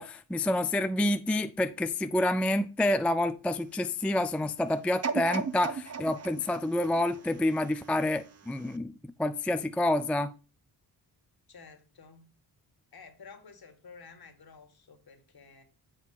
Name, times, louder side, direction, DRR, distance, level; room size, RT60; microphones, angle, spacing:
voice 1, 0.0-8.9 9.2-10.3, left 1 dB, 5° left, 0.4 m, -28 dB
sound 1, 5.0-8.1 8.6-8.7, right 5 dB, 30° right, 0.8 m, -36 dB
voice 2, 11.5-12.3 12.9-15.6, left 5 dB, 50° left, 1.7 m, -52 dB
8.1 x 2.7 x 6.0 m
supercardioid pair, 45°, 48 cm